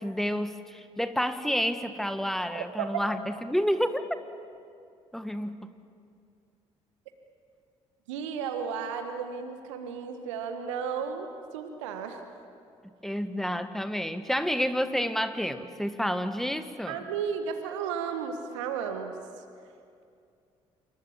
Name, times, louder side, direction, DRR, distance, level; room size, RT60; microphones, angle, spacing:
voice 1, 0.0-4.1 5.1-5.7 13.0-17.1, equal, ahead, 10 dB, 1.7 m, -29 dB
voice 2, 2.5-2.9 8.1-11.3 11.5-12.2 16.9-19.1, right 7 dB, 75° right, 7 dB, 1.7 m, -33 dB
27.5 x 24.5 x 7.5 m, 2.4 s
figure-of-eight pair, 45°, 16 cm